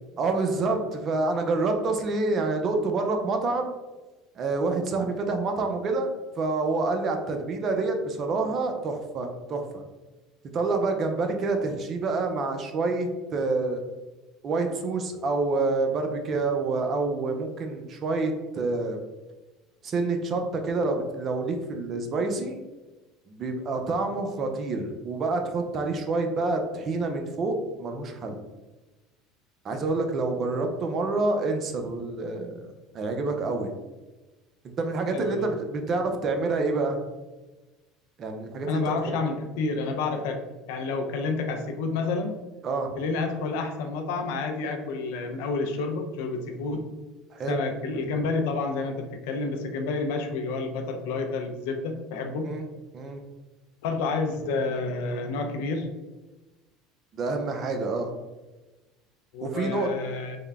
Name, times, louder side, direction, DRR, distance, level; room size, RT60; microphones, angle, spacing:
voice 1, 0.2-3.7 4.4-9.8 10.5-13.8 14.4-19.0 19.8-22.6 23.3-28.4 29.6-33.7 34.8-37.0 38.2-38.8 42.6-42.9 47.3-47.6 52.4-52.6 52.9-53.2 57.1-58.1 59.4-59.9, right 3 dB, 45° right, 4 dB, 0.6 m, -27 dB
voice 2, 35.1-35.5 38.7-40.4 40.7-42.3 42.9-46.8 47.5-52.5 53.8-55.9 59.3-60.4, left 3 dB, 80° left, 4 dB, 0.5 m, -29 dB
3.6 x 2.2 x 3.5 m, 1.2 s
supercardioid pair, 95°, 0 cm